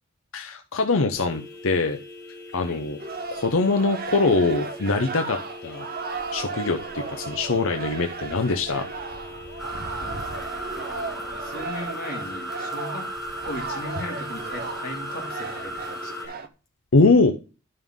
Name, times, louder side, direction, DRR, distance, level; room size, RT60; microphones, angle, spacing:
voice 1, 0.3-2.0 2.5-3.0 3.3-5.9 6.3-8.9 16.9-17.3, left 3 dB, 75° left, 5 dB, 0.7 m, -22 dB
sound 1, 1.2-16.3, left 3 dB, 15° left, 3.6 m, -42 dB
sound 2, 3.0-16.5, right 4 dB, 45° right, 0.7 m, -35 dB
sound 3, 9.6-16.3, right 1 dB, ahead, 1.5 m, -35 dB
voice 2, 10.0-13.1 13.4-16.4, left 1 dB, 45° left, 0 dB, 2.2 m, -38 dB
11.0 x 5.5 x 3.6 m, 0.34 s
head